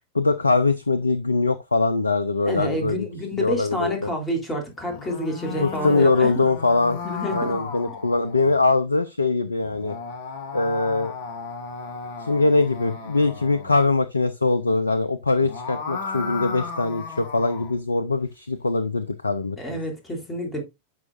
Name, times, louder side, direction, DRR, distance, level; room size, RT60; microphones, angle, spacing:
voice 1, 0.1-3.0 3.4-4.1 5.6-7.0 7.3-10.0 10.5-11.1 12.2-19.8, left 3 dB, 80° left, 0.5 m, -22 dB
voice 2, 2.4-6.3 7.0-7.6 7.9-8.0 19.6-20.6, equal, 15° left, 3.5 m, -28 dB
sound 1, 4.8-8.6 9.6-13.8 15.3-17.8, left 4 dB, 45° left, 1.9 m, -35 dB
11.0 x 6.0 x 2.5 m
figure-of-eight pair, 90°, 0 cm